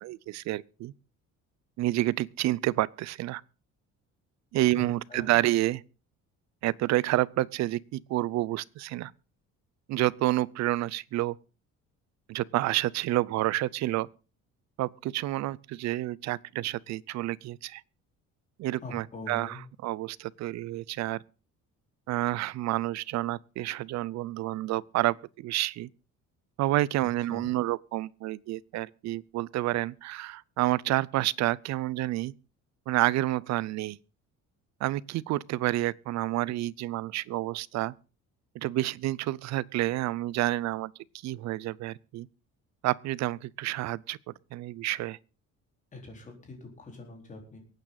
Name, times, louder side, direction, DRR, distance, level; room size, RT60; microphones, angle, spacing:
voice 1, 0.0-0.9 1.8-3.4 4.5-5.8 6.6-9.1 9.9-11.4 12.3-14.1 14.8-17.8 18.6-21.2 22.1-25.9 26.6-32.3 32.9-34.0 34.8-37.9 38.5-40.9 41.2-42.3 42.8-45.2, right 16 dB, 60° right, 0.6 m, -29 dB
voice 2, 18.8-19.6 27.3-27.5 45.9-47.6, left 2 dB, 25° left, 4.1 m, -43 dB
23.5 x 9.2 x 4.0 m
cardioid pair, 170°, 30 cm